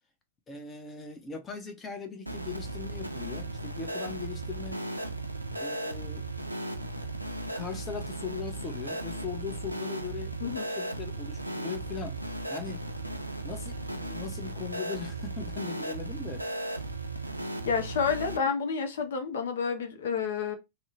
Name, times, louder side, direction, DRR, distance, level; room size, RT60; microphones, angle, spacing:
voice 1, 0.5-4.8 5.6-6.3 7.5-10.3 10.7-12.2 12.5-12.8 13.4-16.4, left 5 dB, 20° left, 0.6 m, -39 dB
sound 1, 2.3-18.4, right 1 dB, 85° right, 0.4 m, -36 dB
voice 2, 17.7-20.5, left 6 dB, 60° left, 0.5 m, -29 dB
2.6 x 2.0 x 2.9 m
figure-of-eight pair, 90°, 0 cm